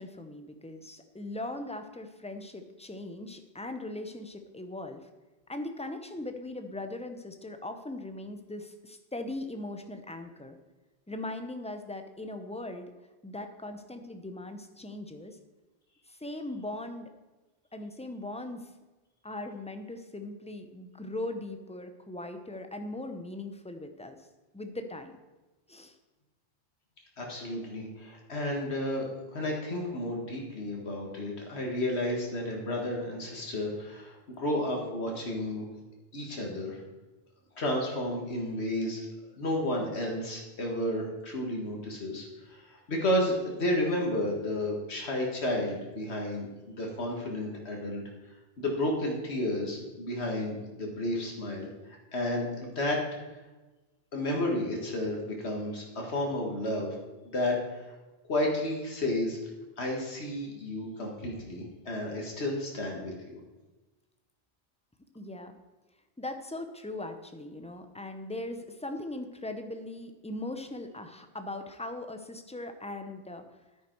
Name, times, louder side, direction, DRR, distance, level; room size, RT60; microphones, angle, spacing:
voice 1, 0.0-5.1 5.5-10.6 11.1-12.9 13.2-15.4 16.1-17.1 17.7-18.7 19.2-24.2 24.5-25.2 25.7-26.0 65.1-65.6 66.2-73.5, left 2 dB, 5° left, 7 dB, 0.7 m, -39 dB
voice 2, 27.2-35.6 36.1-36.8 37.6-39.1 39.4-48.0 48.6-51.7 52.1-53.0 54.1-57.0 57.3-58.0 58.3-59.4 59.8-63.4, left 1 dB, 85° left, 0 dB, 2.0 m, -32 dB
10.5 x 9.2 x 4.6 m, 1.2 s
omnidirectional pair, 1.1 m